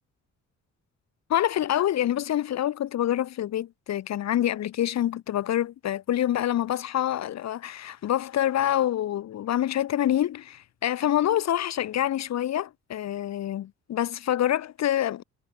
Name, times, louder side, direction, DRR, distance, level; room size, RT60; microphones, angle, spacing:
voice 1, 1.3-15.2, left 12 dB, 60° left, 1.0 m, -26 dB
cardioid pair, 90°, 30 cm